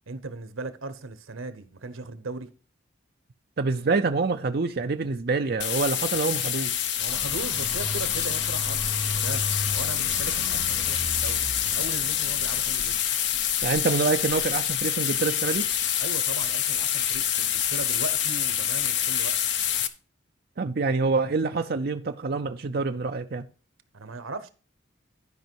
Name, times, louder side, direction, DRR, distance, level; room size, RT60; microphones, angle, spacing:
voice 1, 0.1-2.5 7.0-13.0 16.0-19.3 23.9-24.5, right 3 dB, 90° right, 1.0 m, -38 dB
voice 2, 3.6-6.8 13.6-15.7 20.6-23.5, right 4 dB, 50° right, 0.5 m, -26 dB
sound 1, 5.6-19.9, left 10 dB, 60° left, 0.7 m, -26 dB
sound 2, 7.1-13.0, left 1 dB, ahead, 2.9 m, -36 dB
12.0 x 5.3 x 4.6 m
head